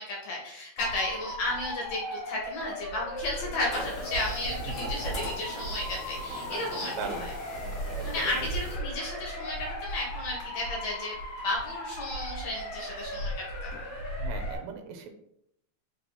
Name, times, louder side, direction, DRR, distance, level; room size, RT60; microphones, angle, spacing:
voice 1, 0.0-7.3 8.0-11.2 11.4-13.8, left 2 dB, 70° left, -3 dB, 1.9 m, -33 dB
Motor vehicle (road) / Siren, 0.8-14.6, equal, 55° left, 1.9 m, -36 dB
sound 1, 3.7-8.8, equal, 35° left, 0.9 m, -42 dB
voice 2, 6.9-7.3 7.6-7.7 8.0-8.1 14.2-15.1, right 6 dB, 85° right, 5 dB, 2.1 m, -39 dB
4.8 x 3.1 x 2.7 m, 0.74 s
omnidirectional pair, 3.9 m